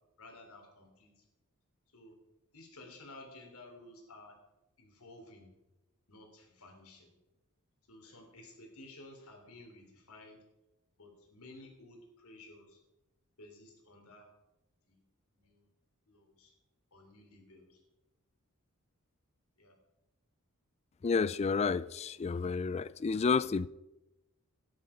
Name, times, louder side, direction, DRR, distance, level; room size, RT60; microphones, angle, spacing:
voice 1, 0.2-1.2 1.9-2.1 2.5-4.4 4.8-5.5 6.1-7.1 7.9-10.4 11.0-12.8 13.4-14.3 14.8-15.0 15.3-15.7 16.1-16.5 16.9-17.8 19.6-19.7, left 2 dB, 75° left, 3.3 m, -54 dB
voice 2, 21.0-23.7, left 5 dB, 30° left, 0.3 m, -30 dB
13.5 x 10.0 x 5.0 m
head